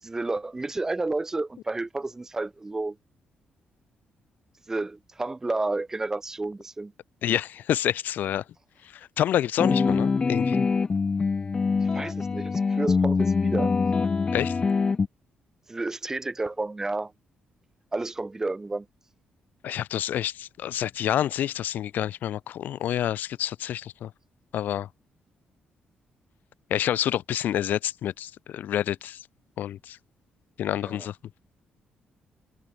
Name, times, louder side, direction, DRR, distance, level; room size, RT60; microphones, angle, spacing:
voice 1, 0.0-3.0 4.7-6.9 11.8-13.7 15.7-17.1 17.9-18.9 30.8-31.1, right 2 dB, 15° right, 7.6 m, -31 dB
voice 2, 7.2-8.4 8.8-10.6 14.3-14.6 19.6-24.1 24.5-24.9 26.7-29.2 29.6-30.0 30.6-31.2, left 11 dB, 75° left, 5.4 m, -28 dB
sound 1, 9.6-15.1, left 4 dB, 30° left, 1.5 m, -24 dB
cardioid pair, 135°, 3 cm